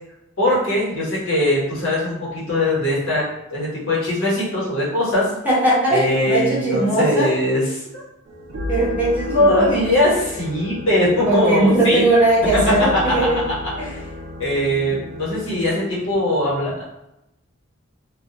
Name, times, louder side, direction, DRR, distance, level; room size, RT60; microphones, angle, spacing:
voice 1, 0.4-3.2 3.5-5.3 5.9-7.6 9.2-12.0 12.5-12.6 14.4-16.8, left 1 dB, 75° left, -7 dB, 1.1 m, -20 dB
voice 2, 5.4-7.3 8.7-9.9 11.3-13.4 13.8-14.0 14.9-15.0, right 1 dB, 10° right, -8 dB, 0.6 m, -19 dB
sound 1, 8.3-15.7, left 2 dB, 60° right, 0.4 m, -32 dB
2.2 x 2.1 x 2.8 m, 0.87 s
head